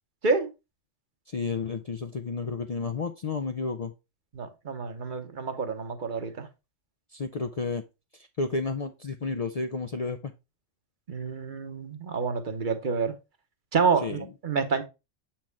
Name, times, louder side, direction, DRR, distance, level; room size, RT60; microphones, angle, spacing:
voice 1, 1.3-3.9 7.1-7.8 8.1-10.3 14.0-14.3, left 4 dB, 55° left, 0.4 m, -31 dB
voice 2, 4.3-6.5 11.1-13.1 13.7-14.8, right 5 dB, 45° right, 1.0 m, -28 dB
7.5 x 4.4 x 3.4 m
omnidirectional pair, 1.3 m